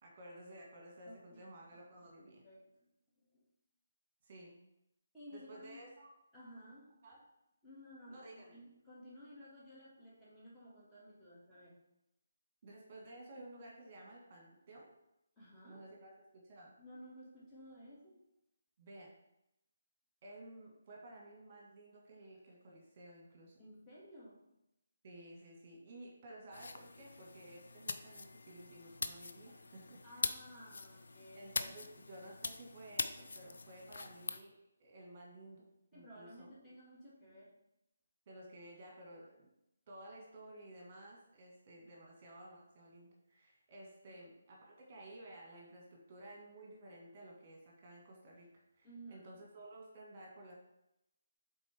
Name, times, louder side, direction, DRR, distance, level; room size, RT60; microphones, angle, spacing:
voice 1, 0.0-2.5 4.2-4.6 5.3-6.1 7.0-7.2 8.1-8.6 12.6-14.9 15.6-16.7 18.8-19.1 20.2-23.6 25.0-30.3 31.3-34.5 34.8-36.7 38.3-39.5 39.9-50.5, right 1 dB, 35° right, -1 dB, 1.7 m, -54 dB
voice 2, 1.1-1.8 2.3-2.9 3.3-3.5 5.1-5.9 6.3-6.9 7.6-11.8 15.4-15.8 16.8-18.2 23.6-24.4 30.0-31.7 35.9-37.5 44.1-44.2 48.8-49.3, equal, 5° left, -10 dB, 2.1 m, -55 dB
sound 1, 26.5-34.4, left 3 dB, 60° left, 0.4 m, -43 dB
7.2 x 4.1 x 3.5 m, 0.86 s
figure-of-eight pair, 145°, 0 cm